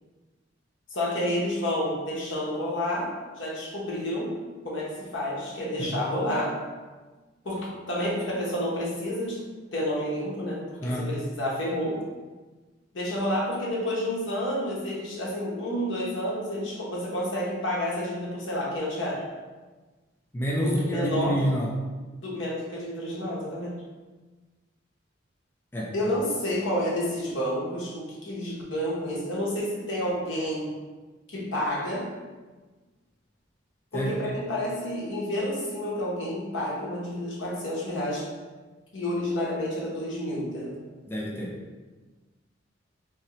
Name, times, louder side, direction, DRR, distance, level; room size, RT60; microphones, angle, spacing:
voice 1, 0.9-4.3 4.6-6.6 7.4-9.4 9.7-12.0 12.9-19.2 20.6-21.4 22.2-23.7 25.9-30.7 31.3-32.1 33.9-38.3 38.9-40.7, left 1 dB, 75° left, -4 dB, 1.0 m, -30 dB
voice 2, 10.8-11.1 20.3-21.7 25.7-26.1 33.9-34.1 41.1-41.6, equal, 10° left, -3 dB, 0.4 m, -28 dB
3.7 x 2.8 x 2.9 m, 1.3 s
head